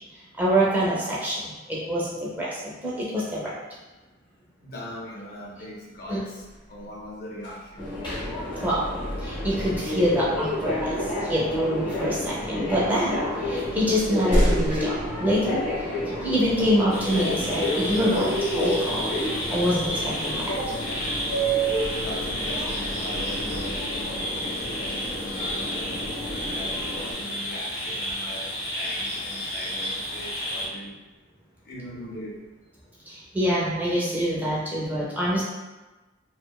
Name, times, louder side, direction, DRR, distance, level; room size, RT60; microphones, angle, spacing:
voice 1, 0.4-3.5 6.1-6.2 8.6-8.8 9.2-15.6 16.2-18.4 18.6-19.1 19.5-20.5 33.1-35.4, equal, 10° right, -8 dB, 0.5 m, -25 dB
voice 2, 4.6-7.9 20.5-20.7 21.9-26.0 26.5-30.9 31.7-32.4, equal, 50° left, -3 dB, 0.5 m, -39 dB
sound 1, 6.0-8.0 10.2-10.4 11.2-11.9 12.8-12.9 13.3-16.2 16.7-16.8 19.4-21.6, equal, 60° right, 0.5 m, -31 dB
Subway metro underground, 7.8-27.1, equal, 25° left, 0.9 m, -30 dB
sound 2, 16.9-30.7, equal, 90° left, 0.6 m, -32 dB
2.6 x 2.1 x 2.2 m, 1.2 s
head